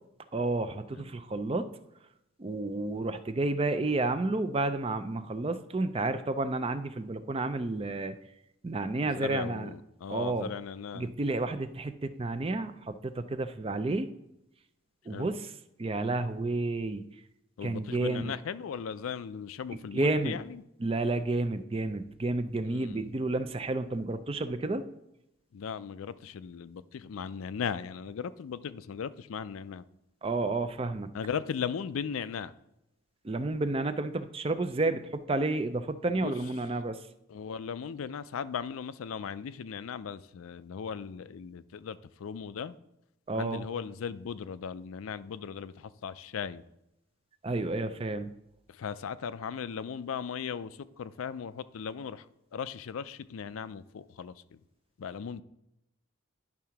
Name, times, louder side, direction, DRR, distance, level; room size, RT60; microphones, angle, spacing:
voice 1, 0.3-1.7 2.4-8.2 8.6-9.7 10.1-10.5 10.9-14.1 15.1-15.5 15.8-17.0 17.6-18.3 19.9-20.4 20.8-24.8 30.2-31.1 33.2-37.0 43.3-43.7 47.4-48.3, right 2 dB, 25° right, 11 dB, 0.4 m, -31 dB
voice 2, 9.1-11.1 15.1-15.3 17.6-20.4 22.7-23.0 25.5-29.8 31.1-32.5 36.1-36.3 37.3-42.8 43.3-46.6 48.8-50.7 51.0-52.2 52.5-54.3 55.0-55.4, left 7 dB, 85° left, 14 dB, 0.4 m, -37 dB
10.5 x 3.7 x 5.7 m, 0.85 s
head